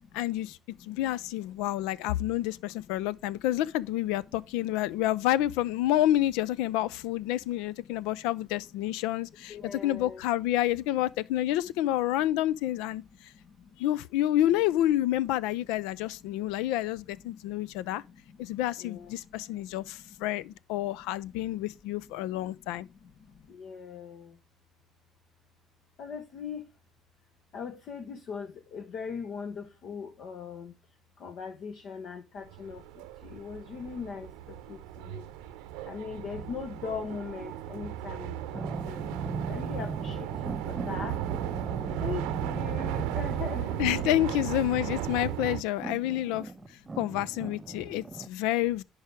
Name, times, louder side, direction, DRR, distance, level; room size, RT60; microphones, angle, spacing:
voice 1, 0.1-13.3 13.8-18.0 18.4-22.9 43.8-46.5 47.0-48.8, left 14 dB, 75° left, 0.4 m, -29 dB
voice 2, 9.5-10.2 13.4-13.7 15.9-16.0 16.2-16.5 17.3-18.4 18.8-19.8 22.4-22.5 22.9-24.4 26.0-26.7 27.5-30.7 31.2-35.3 35.8-39.0 39.5-41.2 42.0-43.8 46.9-47.0, left 6 dB, 60° left, 1.2 m, -41 dB
sound 1, 32.4-45.6, right 12 dB, 75° right, 0.7 m, -35 dB
sound 2, 38.5-48.3, right 3 dB, 25° right, 0.5 m, -39 dB
10.5 x 4.8 x 3.5 m
hypercardioid pair, 60°, 0 cm